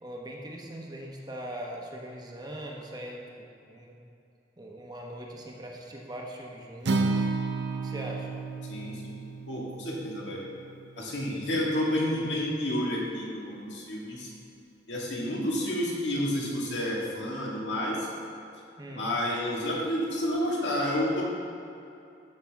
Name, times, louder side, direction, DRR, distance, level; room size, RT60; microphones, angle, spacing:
voice 1, 0.0-3.9 4.6-7.3 7.7-8.3 18.8-19.1, right 1 dB, 20° right, -1 dB, 0.9 m, -41 dB
Acoustic guitar, 6.8-11.1, right 3 dB, 70° right, 0.6 m, -32 dB
voice 2, 8.7-9.1 9.5-10.4 11.0-14.3 14.9-18.1 18.9-21.2, left 1 dB, 75° left, -4 dB, 1.8 m, -30 dB
13.0 x 5.8 x 3.5 m, 2.7 s
head